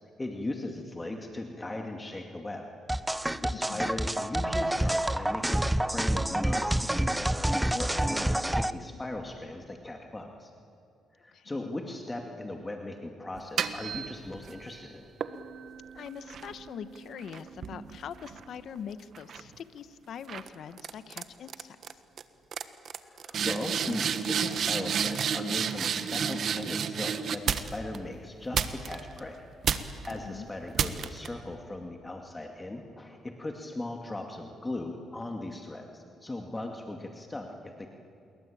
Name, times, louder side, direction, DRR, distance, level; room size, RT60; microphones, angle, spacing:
voice 1, 0.2-2.7 3.1-10.5 11.1-15.1 23.0-37.9, left 2 dB, 20° left, 3 dB, 2.3 m, -38 dB
sound 1, 2.9-8.7, right 1 dB, 5° right, 0.8 m, -28 dB
voice 2, 3.5-3.9 11.3-11.7 15.9-22.0 30.1-30.5, left 8 dB, 65° left, 12 dB, 1.2 m, -43 dB
sound 2, 13.3-14.6 15.2-18.8 19.1-19.5 20.3-20.5 20.8-21.2 21.5-21.9 22.2-22.3 22.5-28.0 28.5-29.2 29.6-30.1 30.7-31.3, right 7 dB, 60° right, 1.4 m, -32 dB
28.0 x 22.0 x 8.7 m, 2.5 s
cardioid pair, 90°, 0 cm